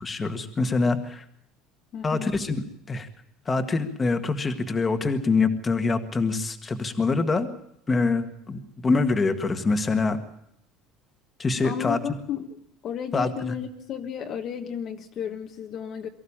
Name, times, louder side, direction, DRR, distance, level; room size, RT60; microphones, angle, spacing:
voice 1, 0.0-1.2 2.0-2.6 2.9-3.1 3.5-7.5 7.9-10.2 11.4-12.0 13.1-13.3, left 3 dB, 15° left, 7 dB, 1.7 m, -25 dB
voice 2, 1.9-2.3 11.6-12.6 12.8-16.1, left 8 dB, 35° left, 4 dB, 1.5 m, -33 dB
23.5 x 15.0 x 8.8 m, 0.72 s
cardioid pair, 165°, 0 cm